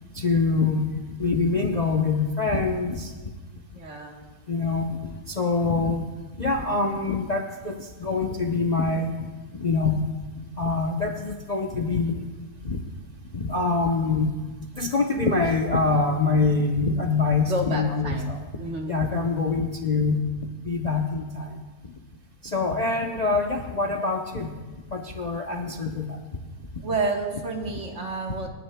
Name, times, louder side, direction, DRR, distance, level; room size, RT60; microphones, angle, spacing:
voice 1, 0.1-0.9 1.2-3.1 4.5-5.0 5.3-6.1 6.4-9.2 9.5-10.1 10.6-12.2 12.6-12.8 13.3-14.3 14.7-18.4 18.9-20.2 20.6-21.5 22.4-24.5 24.9-26.2, left 3 dB, 35° left, 1 dB, 0.7 m, -24 dB
voice 2, 3.7-4.3 17.5-19.3 25.4-25.6 26.8-28.5, right 2 dB, 50° right, 1 dB, 1.6 m, -30 dB
28.5 x 11.0 x 2.2 m, 1.3 s
omnidirectional pair, 1.7 m